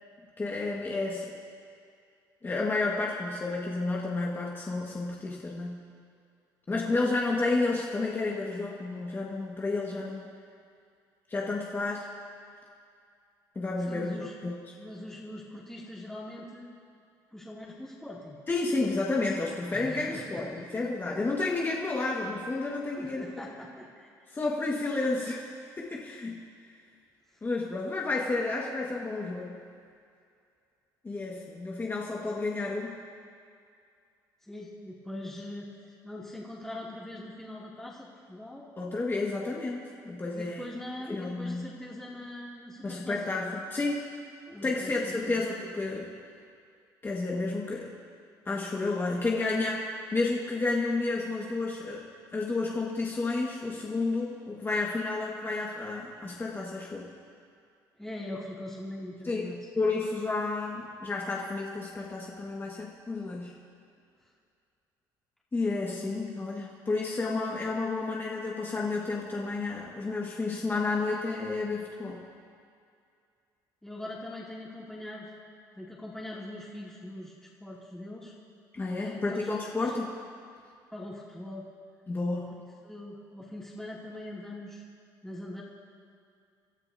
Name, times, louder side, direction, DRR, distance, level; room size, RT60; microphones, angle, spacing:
voice 1, 0.4-1.3 2.4-5.8 6.7-10.3 11.3-12.1 13.6-14.6 18.5-23.4 24.3-25.5 25.8-26.3 27.4-29.6 31.0-32.9 38.8-40.7 41.1-41.7 42.8-44.1 44.6-46.1 47.0-47.9 48.5-49.8 50.1-57.1 59.3-63.5 65.5-72.2 78.7-80.1 82.1-82.5, left 3 dB, 25° left, -2 dB, 1.8 m, -31 dB
voice 2, 13.8-14.3 14.8-16.7 17.3-18.4 19.6-20.8 23.0-24.1 34.4-38.7 40.3-43.4 44.5-45.4 58.0-59.6 73.8-75.3 75.7-77.3 77.6-78.3 78.9-79.5 79.7-79.9 80.9-81.7 82.3-82.4 82.8-84.8 85.2-85.6, left 1 dB, 5° left, -6 dB, 2.8 m, -42 dB
27.5 x 12.5 x 2.8 m, 2.3 s
supercardioid pair, 85°, 9 cm